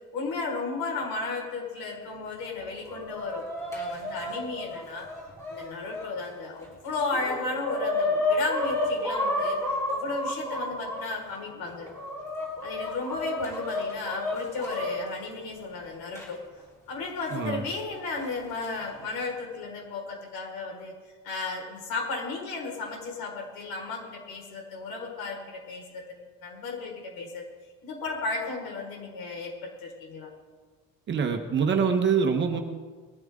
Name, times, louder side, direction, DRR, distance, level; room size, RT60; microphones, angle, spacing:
voice 1, 0.1-5.1 5.5-11.9 12.6-16.4 16.9-20.9 21.2-27.4 27.8-30.3, left 3 dB, 75° left, -1 dB, 4.9 m, -34 dB
Chicken rooster, 2.6-6.1 6.6-6.7 7.0-11.0 11.6-14.9 16.1-16.2 17.2-17.3 18.3-18.7, left 2 dB, 10° left, 3.9 m, -31 dB
voice 2, 31.1-32.6, right 6 dB, 30° right, 6 dB, 1.1 m, -24 dB
21.0 x 13.0 x 3.7 m, 1.4 s
cardioid pair, 180°, 36 cm